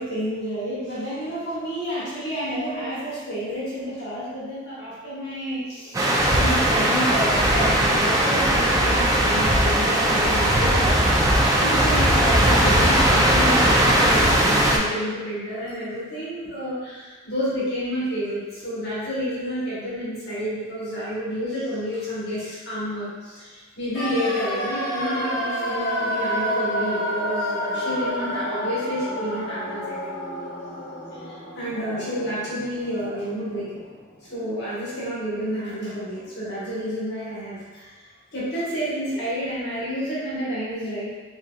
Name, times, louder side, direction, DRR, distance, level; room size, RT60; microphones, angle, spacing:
voice 1, 0.0-6.1 6.4-30.3 31.1-33.8 34.3-38.0 38.3-41.1, equal, 55° left, -9 dB, 1.2 m, -30 dB
sound 1, 5.9-14.8, right 1 dB, 15° right, 0.3 m, -19 dB
sound 2, 23.9-33.9 34.1-34.2, equal, 75° left, 0.9 m, -29 dB
3.7 x 2.8 x 2.2 m, 1.4 s
head